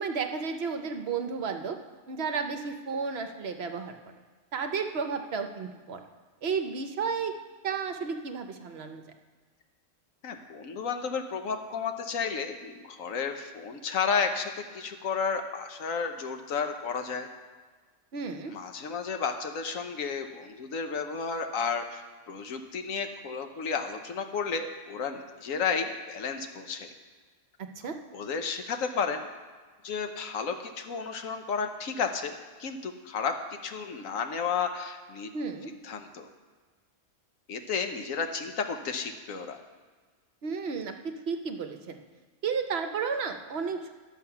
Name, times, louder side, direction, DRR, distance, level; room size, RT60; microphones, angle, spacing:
voice 1, 0.0-1.8 2.1-4.0 4.5-6.0 6.4-7.4 7.6-9.0 18.1-18.5 27.8-28.0 35.3-35.7 40.4-42.0 42.4-43.9, right 5 dB, 55° right, 6 dB, 0.9 m, -32 dB
voice 2, 10.2-17.3 18.5-26.9 28.1-29.2 29.8-32.3 32.6-35.3 35.8-36.3 37.5-39.6, left 5 dB, 75° left, 6 dB, 1.3 m, -32 dB
11.5 x 7.2 x 5.7 m, 1.5 s
omnidirectional pair, 1.4 m